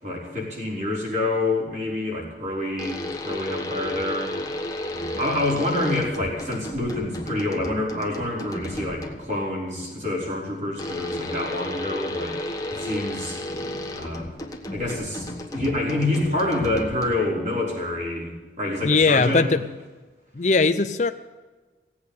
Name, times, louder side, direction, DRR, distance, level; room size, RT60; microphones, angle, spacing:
voice 1, 0.0-4.3 4.9-12.4 12.7-13.4 13.9-14.3 14.7-18.3 18.6-19.6, left 2 dB, 40° right, -3 dB, 5.4 m, -27 dB
sound 1, 2.8-9.4 10.8-17.4, left 1 dB, 20° left, 1.3 m, -33 dB
voice 2, 18.8-19.6 20.4-21.1, left 4 dB, 40° left, 8 dB, 0.6 m, -19 dB
17.0 x 8.5 x 8.4 m, 1.3 s
head